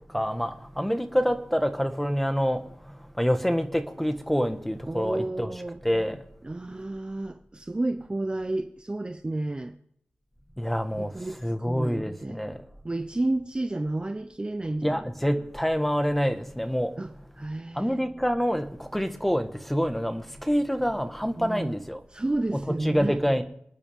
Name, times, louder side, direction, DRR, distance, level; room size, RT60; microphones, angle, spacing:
voice 1, 0.1-2.6 3.2-5.5 5.8-6.2 10.6-12.6 14.8-16.9 17.8-22.0 22.5-23.4, equal, 5° left, 1.5 m, -27 dB
voice 2, 4.9-5.8 6.4-9.7 11.0-12.4 12.8-15.1 17.0-18.0 21.4-21.7 22.1-23.2, right 2 dB, 25° right, 0.7 m, -31 dB
28.5 x 9.8 x 3.6 m
wide cardioid pair, 85°, 4 cm